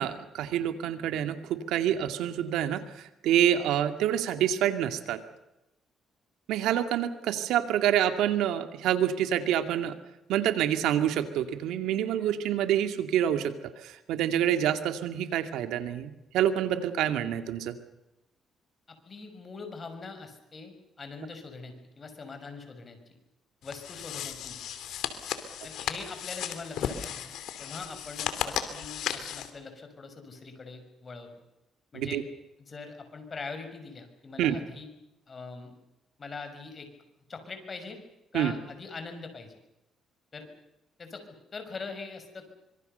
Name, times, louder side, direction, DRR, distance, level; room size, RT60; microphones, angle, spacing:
voice 1, 0.0-5.2 6.5-10.0 10.3-13.5 13.8-17.8 31.9-32.2 34.4-34.6 38.3-38.5, right 10 dB, 90° right, 9 dB, 2.3 m, -27 dB
voice 2, 19.1-23.0 23.6-24.6 25.6-27.3 27.6-31.3 31.9-32.2 32.6-34.9 35.3-35.8 36.2-36.9 37.3-38.0 38.3-39.5 40.3-40.5 41.0-41.2 41.5-42.5, left 4 dB, 35° left, 7 dB, 6.3 m, -42 dB
sound 1, 23.6-29.5, left 9 dB, 80° left, 2.8 m, -35 dB
25.5 x 23.5 x 6.8 m, 0.90 s
cardioid pair, 90°, 0 cm